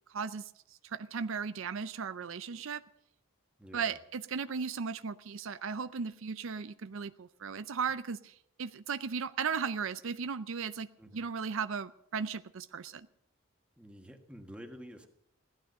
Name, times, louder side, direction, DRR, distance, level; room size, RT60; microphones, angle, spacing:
voice 1, 0.1-0.5 0.8-2.8 3.7-8.3 8.6-10.9 11.1-13.1, right 6 dB, 65° right, 13 dB, 0.5 m, -36 dB
voice 2, 3.6-4.0 11.0-11.3 13.8-15.1, equal, 5° right, 4 dB, 1.6 m, -49 dB
16.5 x 12.0 x 6.5 m, 0.72 s
head